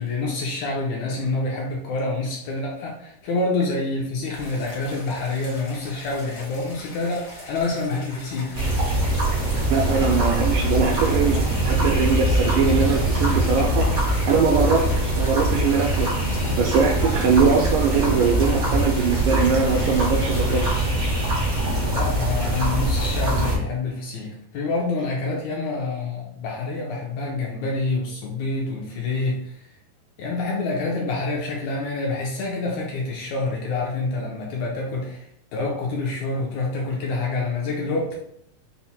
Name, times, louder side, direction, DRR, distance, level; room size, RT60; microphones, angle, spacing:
voice 1, 0.0-8.6 21.9-29.7 30.2-38.1, left 3 dB, 75° left, -2 dB, 1.7 m, -27 dB
sound 1, 4.3-20.9, left 1 dB, 60° left, 0.8 m, -40 dB
sound 2, 8.5-23.6, right 1 dB, 65° right, 0.9 m, -22 dB
voice 2, 9.7-14.0 14.3-16.1 16.6-20.7, right 5 dB, 80° right, 1 dB, 2.0 m, -22 dB
5.7 x 2.1 x 4.1 m, 0.70 s
omnidirectional pair, 4.0 m